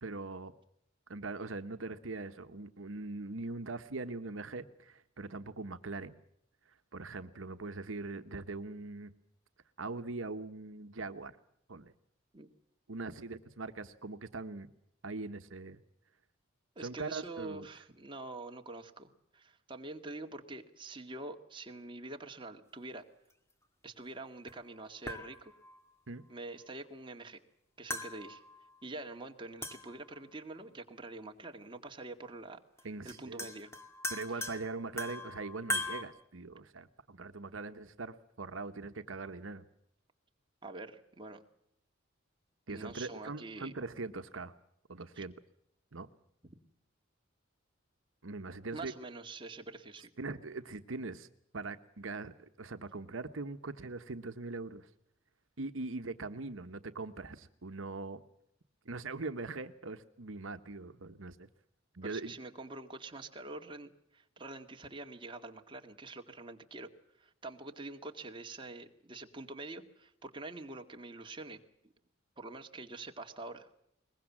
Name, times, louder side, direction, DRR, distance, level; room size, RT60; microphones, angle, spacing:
voice 1, 0.0-0.5 1.1-6.2 6.9-9.1 9.8-11.3 11.7-11.9 12.9-14.7 15.0-15.8 16.8-17.7 26.1-26.2 32.8-33.5 34.1-39.6 42.7-44.5 44.9-45.3 45.9-46.1 48.2-48.9 50.2-51.3 51.5-54.9 55.6-58.2 58.8-61.5 61.9-62.3, right 3 dB, 80° right, 10 dB, 1.1 m, -41 dB
voice 2, 16.8-23.0 23.8-25.5 26.3-27.4 27.8-28.4 28.8-33.7 34.3-34.5 40.6-41.4 42.7-43.7 45.2-45.3 46.5-46.6 48.7-50.1 62.0-66.9 67.2-71.6 72.4-73.7, right 2 dB, 25° right, 4 dB, 2.0 m, -46 dB
sound 1, 24.5-24.6 25.1-25.8 27.9-28.8 29.6-30.2 31.6-31.7 32.8-32.9 33.1-36.0, left 1 dB, 15° left, 2.1 m, -40 dB
22.5 x 21.0 x 7.4 m, 0.75 s
head